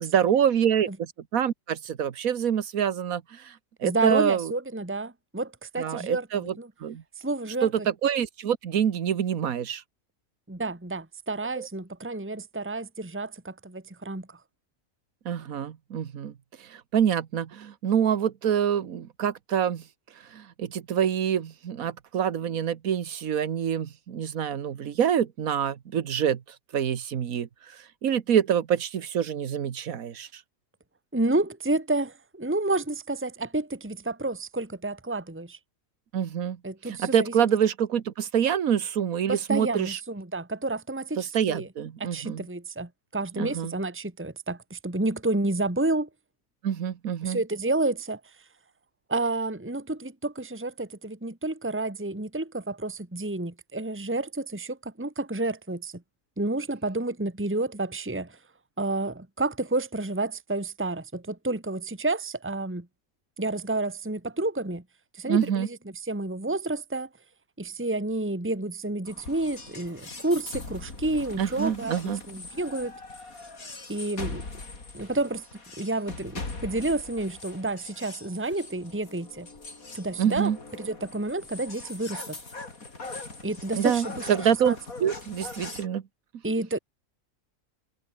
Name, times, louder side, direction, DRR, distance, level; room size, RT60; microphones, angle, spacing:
voice 1, 0.0-4.5 5.8-6.5 6.8-7.0 7.6-9.8 11.6-11.7 15.2-16.3 16.6-19.8 20.3-26.4 26.7-30.4 36.1-36.6 36.8-40.0 41.2-42.4 43.4-43.7 46.6-47.4 65.3-65.7 71.4-72.2 80.2-80.6 83.8-84.7 85.0-86.0, right 8 dB, 85° right, 1.6 m, -26 dB
voice 2, 3.8-6.7 7.2-7.9 10.5-14.4 31.1-35.6 36.6-37.3 39.3-41.7 42.0-46.1 47.2-48.3 49.1-56.0 56.4-58.4 58.8-62.9 63.4-64.8 65.1-65.8 66.0-67.1 67.6-72.9 73.9-74.4 74.9-75.4 75.8-79.5 79.9-80.5 80.8-82.4 83.4-84.8 86.4-86.8, right 2 dB, 10° right, 1.7 m, -30 dB
sound 1, 69.1-85.9, left 3 dB, 85° left, 4.2 m, -41 dB
omnidirectional pair, 1.4 m